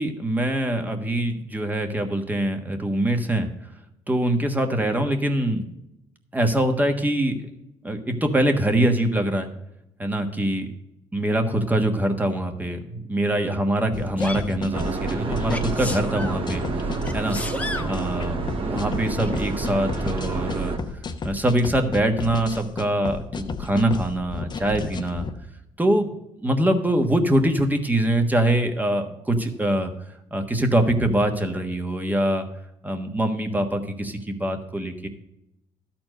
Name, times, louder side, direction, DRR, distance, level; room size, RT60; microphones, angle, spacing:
voice 1, 0.0-3.5 4.1-5.6 6.3-7.3 7.8-9.5 10.0-10.7 11.1-17.4 17.9-20.7 21.2-25.2 25.8-26.1 26.4-29.9 30.3-32.5 32.8-35.1, right 1 dB, 15° right, 5 dB, 1.4 m, -23 dB
sound 1, 13.9-25.3, left 4 dB, 40° left, 0.9 m, -33 dB
Sneeze, 14.2-14.5 15.5-16.4 17.0-17.9 19.2-19.4, left 2 dB, 10° left, 0.9 m, -32 dB
sound 2, 14.7-20.8, right 4 dB, 50° right, 1.4 m, -29 dB
12.5 x 4.4 x 6.5 m, 0.84 s
cardioid pair, 85°, 12 cm